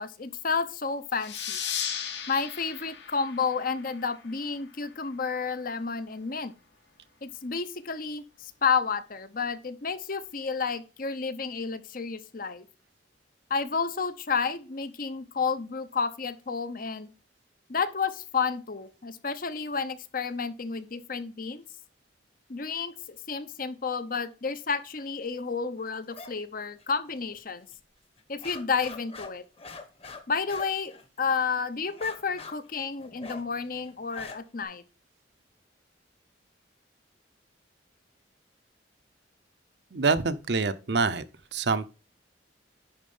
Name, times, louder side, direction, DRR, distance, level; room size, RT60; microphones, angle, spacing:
voice 1, 0.0-1.6 2.3-6.5 7.2-12.7 13.5-17.1 17.7-21.6 22.5-27.7 28.3-29.4 30.3-30.9 31.2-34.8, left 5 dB, 50° left, 0.8 m, -31 dB
sound 1, 1.2-4.4, left 8 dB, 70° left, 1.8 m, -36 dB
sound 2, 26.1-26.3 26.6-27.4 27.7-27.8 28.2-31.4 31.9-34.6, left 3 dB, 30° left, 1.2 m, -45 dB
voice 2, 39.9-41.2 41.5-41.9, right 4 dB, 60° right, 0.7 m, -26 dB
10.5 x 4.3 x 5.4 m
head